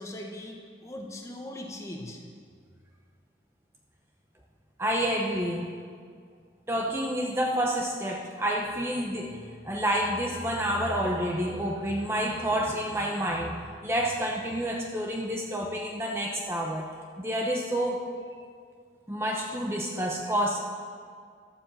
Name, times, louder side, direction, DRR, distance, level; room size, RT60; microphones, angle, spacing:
voice 1, 0.0-2.2, left 1 dB, 15° left, 1 dB, 1.2 m, -40 dB
voice 2, 4.8-5.7 6.7-9.4 9.6-13.5 13.8-16.9 17.2-18.0 19.1-20.6, equal, 15° right, 0 dB, 0.8 m, -29 dB
12.5 x 7.5 x 7.5 m, 2.1 s
head